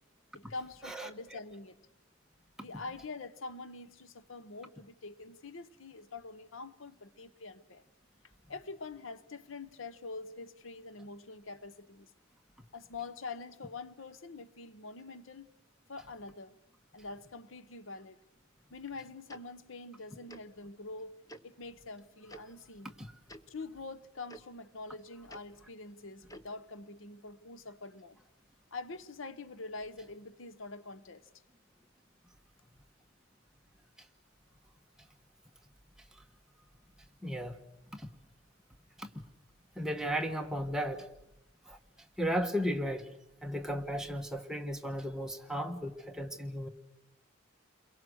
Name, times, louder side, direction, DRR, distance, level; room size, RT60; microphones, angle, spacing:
voice 1, 0.3-1.7 2.6-7.8 8.5-12.1 12.7-15.5 15.9-16.6 16.9-18.2 18.7-22.9 23.5-28.2 28.7-31.3, left 3 dB, 80° left, 1.0 m, -45 dB
Tick-tock, 19.3-19.4 20.3-20.4 21.3-21.4 22.3-22.4 23.3-23.4 24.3-24.4 25.3-25.4 26.3-26.5, equal, 20° left, 1.1 m, -49 dB
voice 2, 37.2-37.6 37.9-38.1 39.0-39.2 39.7-41.1 41.7-41.8 42.2-43.1 43.4-46.7, equal, 5° right, 1.4 m, -35 dB
29.5 x 22.5 x 6.4 m
head